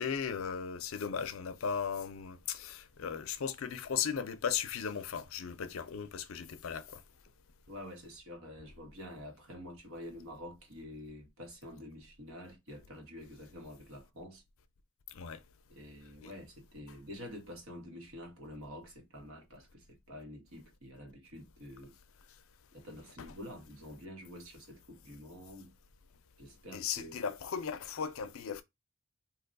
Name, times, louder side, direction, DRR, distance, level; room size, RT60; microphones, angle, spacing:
voice 1, 0.0-7.0 15.1-15.4 16.2-16.3 26.7-28.6, left 7 dB, 75° left, 0.5 m, -36 dB
voice 2, 7.7-14.4 15.7-21.9 22.7-25.7 26.4-27.2, left 1 dB, 75° right, 1.2 m, -48 dB
2.9 x 2.2 x 3.9 m
head